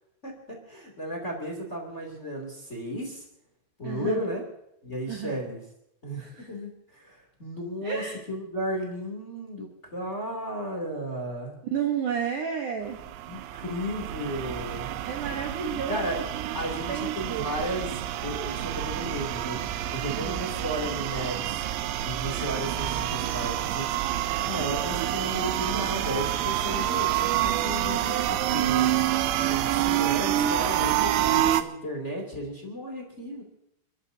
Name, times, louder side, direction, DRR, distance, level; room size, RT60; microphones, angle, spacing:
voice 1, 0.2-3.2 3.8-4.4 4.8-5.6 6.0-11.6 13.3-14.9 15.9-16.2 16.5-19.6 19.9-21.6 22.0-23.9 24.4-29.0 29.5-33.4, equal, 20° left, 0 dB, 2.4 m, -34 dB
voice 2, 3.8-4.3 5.1-5.4 6.2-6.5 7.8-8.2 11.7-13.0 15.1-16.6 16.9-17.5 20.1-20.5 31.1-31.3, right 7 dB, 65° right, 1 dB, 2.1 m, -32 dB
sound 1, 12.9-31.6, right 12 dB, 85° right, 3.0 m, -28 dB
29.0 x 13.5 x 2.8 m, 0.80 s
omnidirectional pair, 4.9 m